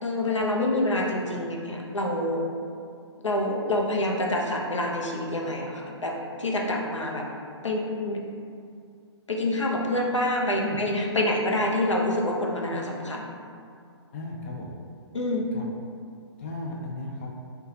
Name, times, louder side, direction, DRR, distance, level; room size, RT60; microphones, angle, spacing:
voice 1, 0.0-2.4 3.2-7.3 7.6-8.2 9.3-13.2 15.1-15.5, left 1 dB, 90° left, -1 dB, 0.6 m, -27 dB
voice 2, 14.1-14.7 15.5-15.7 16.4-17.3, left 1 dB, 30° left, -1 dB, 0.4 m, -35 dB
3.1 x 2.2 x 3.5 m, 2.3 s
figure-of-eight pair, 130°, 15 cm